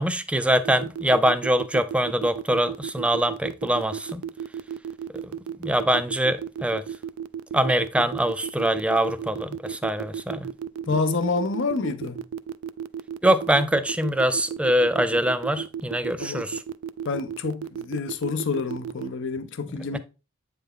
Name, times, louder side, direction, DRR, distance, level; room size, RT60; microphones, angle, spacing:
voice 1, 0.0-4.2 5.2-5.3 5.6-6.8 7.5-10.5 10.9-11.0 13.2-16.6 19.8-20.0, right 1 dB, 5° right, 0.4 m, -23 dB
sound 1, 0.6-19.1, right 8 dB, 90° right, 0.3 m, -33 dB
voice 2, 10.9-12.3 16.2-16.5 17.0-20.0, left 4 dB, 65° left, 0.6 m, -28 dB
8.0 x 3.4 x 3.7 m
head